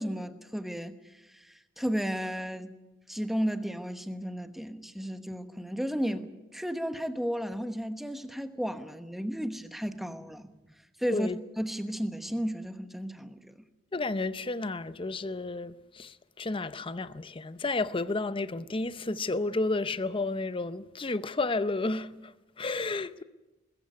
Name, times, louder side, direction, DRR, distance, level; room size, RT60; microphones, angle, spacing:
voice 1, 0.0-2.7 3.1-10.5 11.0-11.3 11.6-13.6, equal, ahead, 1.0 m, -34 dB
voice 2, 13.9-23.2, left 3 dB, 25° left, 0.6 m, -32 dB
21.0 x 14.5 x 9.5 m
head